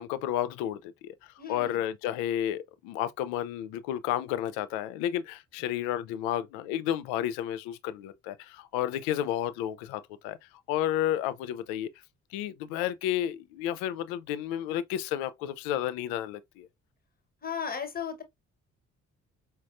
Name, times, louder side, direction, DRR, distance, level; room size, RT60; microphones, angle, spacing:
voice 1, 0.0-10.4 10.7-11.9 12.3-16.7, left 11 dB, 65° left, 0.5 m, -31 dB
voice 2, 1.4-1.8 17.4-18.2, left 7 dB, 25° left, 1.1 m, -35 dB
5.0 x 2.0 x 2.5 m
figure-of-eight pair, 40°, 38 cm